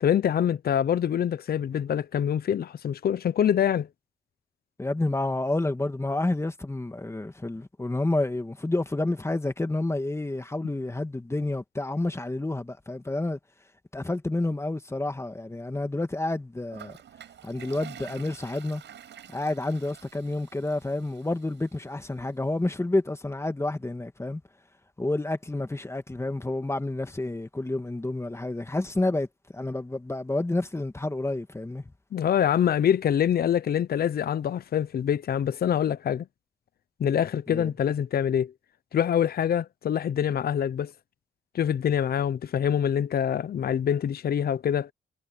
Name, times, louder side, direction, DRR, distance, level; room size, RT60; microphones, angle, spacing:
voice 1, 0.0-3.9 32.1-36.3 37.0-38.5 38.9-40.9 41.5-44.9, left 9 dB, 50° left, 0.9 m, -25 dB
voice 2, 4.8-13.4 13.9-17.0 17.4-18.8 19.3-24.4 25.0-29.3 29.5-31.8 37.5-37.7, left 2 dB, 15° left, 1.9 m, -29 dB
Toilet flush, 16.7-21.8, right 9 dB, 65° right, 5.9 m, -48 dB
cardioid pair, 90°, 20 cm